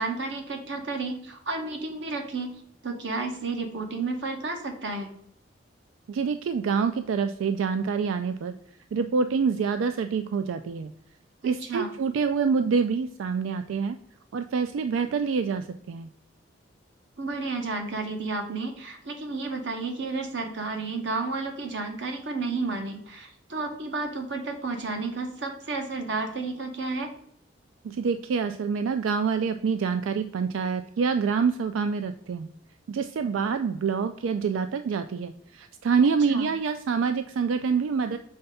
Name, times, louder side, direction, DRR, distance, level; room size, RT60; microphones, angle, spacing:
voice 1, 0.0-2.5 2.8-5.1 11.4-11.9 17.2-27.1 36.3-36.5, right 3 dB, 65° right, 4 dB, 1.1 m, -32 dB
voice 2, 6.1-8.5 8.9-10.9 11.4-14.0 14.3-16.1 27.8-32.5 32.9-38.2, right 5 dB, 90° right, 9 dB, 0.4 m, -26 dB
5.6 x 3.3 x 5.4 m, 0.70 s
head